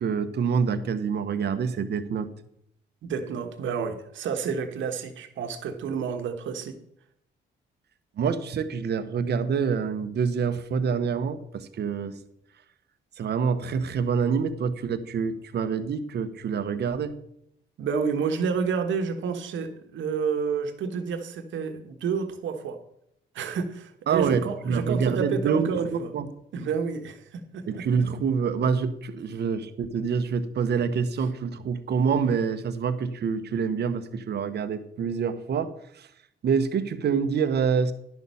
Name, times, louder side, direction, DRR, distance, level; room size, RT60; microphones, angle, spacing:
voice 1, 0.0-2.3 8.2-12.2 13.2-17.2 24.1-26.3 27.7-36.1 36.4-37.9, right 6 dB, 55° right, 11 dB, 1.0 m, -26 dB
voice 2, 3.0-6.8 17.8-22.8 23.3-26.1 26.5-27.9, right 6 dB, 70° right, 6 dB, 1.3 m, -29 dB
11.0 x 6.3 x 5.5 m, 0.75 s
cardioid pair, 90°, 20 cm